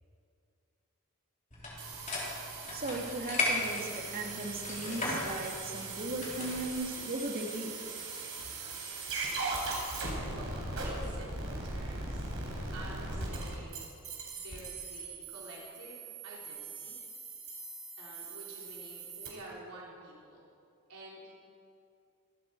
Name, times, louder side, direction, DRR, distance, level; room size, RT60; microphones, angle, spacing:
sound 1, 1.5-6.7, left 2 dB, 35° left, 3.6 m, -36 dB
sound 2, 1.8-19.3, right 3 dB, 70° right, 3.9 m, -40 dB
voice 1, 2.7-7.8, right 2 dB, 45° right, 1 dB, 2.0 m, -37 dB
voice 2, 10.2-12.4 12.7-13.9 14.3-17.0 18.0-20.4 20.9-21.3, right 1 dB, 85° right, -4 dB, 3.6 m, -49 dB
24.0 x 12.0 x 4.6 m, 2.4 s
head